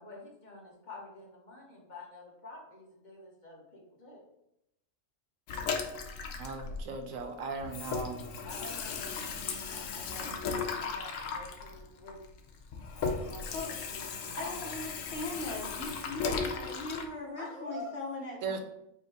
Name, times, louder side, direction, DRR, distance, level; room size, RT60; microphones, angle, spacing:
voice 1, 0.0-4.2 8.4-9.3 9.6-12.2 12.9-14.5 17.3-17.9, left 2 dB, 40° left, -2 dB, 1.0 m, -48 dB
Water tap faucet / Sink (filling or washing), 5.5-7.3 7.6-17.1, left 5 dB, 75° left, 0.9 m, -36 dB
voice 2, 6.3-8.2 18.4-18.6, right 4 dB, 80° right, 5 dB, 1.0 m, -38 dB
voice 3, 14.4-18.6, left 2 dB, 60° left, -2 dB, 1.2 m, -39 dB
5.0 x 2.1 x 3.4 m, 0.81 s
omnidirectional pair, 1.4 m